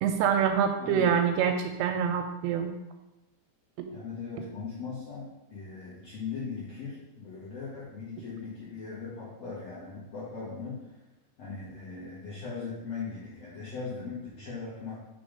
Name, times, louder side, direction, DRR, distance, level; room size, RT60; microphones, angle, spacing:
voice 1, 0.0-2.7 3.8-3.9, right 8 dB, 85° right, 6 dB, 2.4 m, -26 dB
voice 2, 3.9-11.0 11.4-15.1, left 5 dB, 55° left, -9 dB, 2.0 m, -39 dB
6.1 x 3.7 x 5.1 m, 0.97 s
omnidirectional pair, 4.9 m